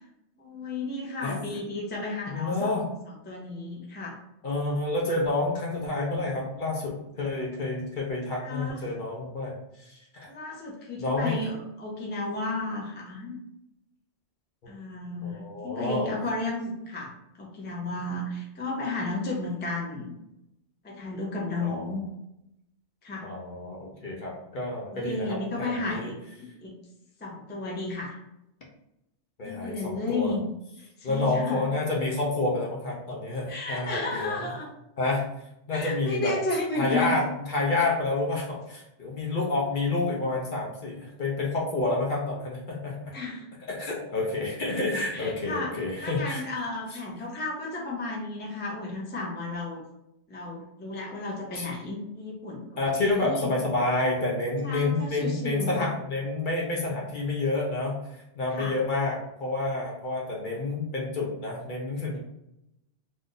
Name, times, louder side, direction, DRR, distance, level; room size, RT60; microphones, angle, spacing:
voice 1, 0.4-2.8 3.3-4.2 8.4-8.8 10.3-13.4 14.7-17.1 17.4-20.1 20.8-22.0 23.0-23.3 24.9-26.1 26.4-26.7 27.2-28.2 29.4-30.4 30.8-31.6 33.5-34.7 35.7-37.2 43.1-43.5 45.0-49.8 50.3-52.7 53.0-53.6 54.6-55.9 58.5-58.7, left 2 dB, 15° left, -2 dB, 0.5 m, -33 dB
voice 2, 2.3-2.8 4.4-10.3 11.0-11.5 15.2-16.1 21.6-21.9 23.2-26.1 29.4-30.4 31.0-34.5 35.0-35.2 35.7-36.3 36.7-43.1 43.7-46.4 51.6-51.7 52.8-62.2, left 2 dB, 50° left, -2 dB, 0.8 m, -29 dB
2.6 x 2.5 x 3.8 m, 0.84 s
omnidirectional pair, 1.2 m